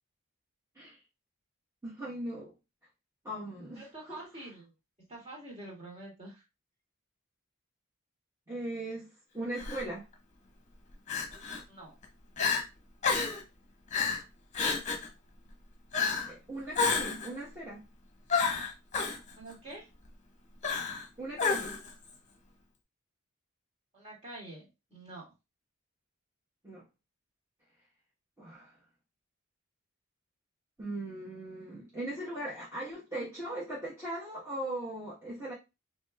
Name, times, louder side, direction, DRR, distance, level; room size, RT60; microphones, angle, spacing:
voice 1, 1.8-2.5 3.2-4.2 8.5-10.1 16.3-17.8 21.2-21.8 26.6-26.9 28.4-28.8 30.8-35.5, right 1 dB, 15° right, 1.2 m, -39 dB
voice 2, 3.7-4.7 5.1-6.4 11.7-12.0 19.4-19.9 23.9-25.3, right 2 dB, 30° right, 2.1 m, -46 dB
Crying sobbing, 9.6-9.8 11.1-11.6 12.0-12.1 12.4-12.6 13.0-13.4 13.9-14.2 14.5-15.1 15.9-16.3 16.7-17.3 18.3-19.2 20.6-21.1 21.4-21.9, left 5 dB, 35° left, 0.9 m, -30 dB
5.1 x 3.2 x 2.3 m
head